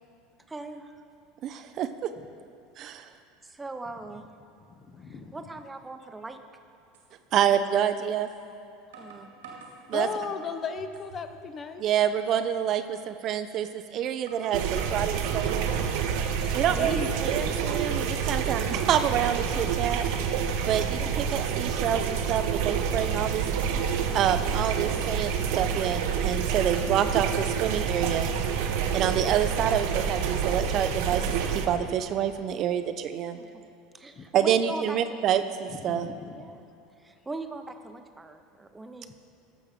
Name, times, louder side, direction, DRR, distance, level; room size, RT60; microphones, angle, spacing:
voice 1, 0.5-1.0 3.4-4.2 5.1-6.4 9.0-9.3 10.1-10.2 33.3-33.6 33.9-35.3 36.3-36.6 37.0-39.1, right 3 dB, 15° right, 7 dB, 0.8 m, -41 dB
voice 2, 1.4-2.1 2.8-3.1 7.3-8.3 9.9-10.1 11.8-15.7 16.5-20.1 20.7-23.5 24.1-28.3 28.9-33.4 34.3-36.1, right 9 dB, 50° right, 9 dB, 0.5 m, -27 dB
voice 3, 4.7-5.4 9.9-11.9 16.4-17.1 17.4-17.6 34.2-34.3 35.7-36.3, left 5 dB, 35° left, 8 dB, 0.8 m, -36 dB
sound 1, 6.9-7.1 8.3-8.4 8.9-10.3 10.8-11.3 11.7-11.8 12.3-12.4 13.6-13.7 14.3-15.6 16.1-16.6, right 4 dB, 90° right, 2.2 m, -46 dB
sound 2, 14.5-31.7, right 7 dB, 70° right, 0.8 m, -28 dB
14.5 x 6.2 x 5.1 m, 2.6 s
hypercardioid pair, 95°, 0 cm